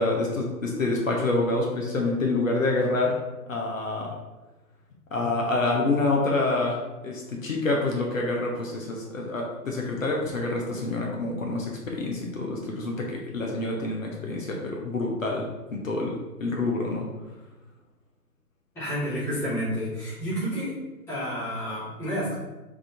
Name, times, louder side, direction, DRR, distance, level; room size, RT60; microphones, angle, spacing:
voice 1, 0.0-3.1 3.5-4.1 5.1-6.8 7.0-15.5 15.7-17.0, left 2 dB, 55° left, -1 dB, 0.9 m, -27 dB
voice 2, 18.7-20.7 21.1-22.3, equal, 5° left, -13 dB, 1.1 m, -30 dB
3.7 x 3.6 x 3.5 m, 1.1 s
figure-of-eight pair, 145°, 49 cm